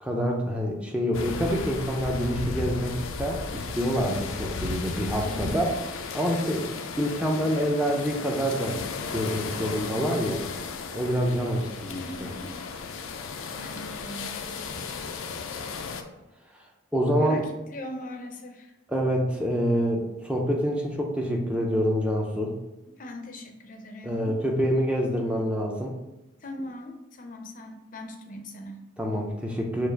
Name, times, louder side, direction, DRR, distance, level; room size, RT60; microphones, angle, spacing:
voice 1, 0.0-5.7 6.1-6.7 7.0-8.8 9.1-10.4 10.9-12.3 16.9-17.4 18.9-22.5 24.0-25.9 29.0-29.9, equal, 5° right, 0 dB, 0.5 m, -26 dB
sound 1, 1.1-16.0, left 4 dB, 90° left, 0.5 m, -35 dB
voice 2, 5.2-5.6 11.9-12.5 13.4-14.6 17.2-18.7 23.0-24.4 26.4-28.8, left 1 dB, 40° left, 4 dB, 0.5 m, -40 dB
4.6 x 2.5 x 4.5 m, 0.98 s
head